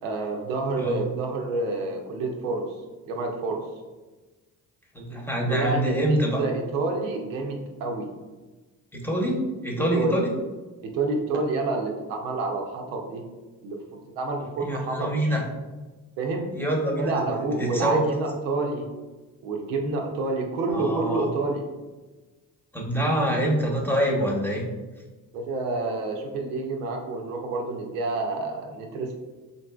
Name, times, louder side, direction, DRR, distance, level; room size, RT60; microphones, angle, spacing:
voice 1, 0.0-2.7 3.1-3.6 5.5-8.1 9.9-10.2 10.8-13.2 13.6-13.8 14.2-15.3 16.2-16.5 17.0-18.9 19.4-21.6 25.3-29.1, right 3 dB, 85° right, 2 dB, 0.6 m, -28 dB
voice 2, 4.9-6.4 8.9-10.3 14.6-15.4 16.5-17.2 17.6-18.0 20.7-21.2 22.7-24.7, right 1 dB, 5° left, -2 dB, 0.9 m, -25 dB
3.7 x 2.5 x 2.3 m, 1.2 s
hypercardioid pair, 45°, 48 cm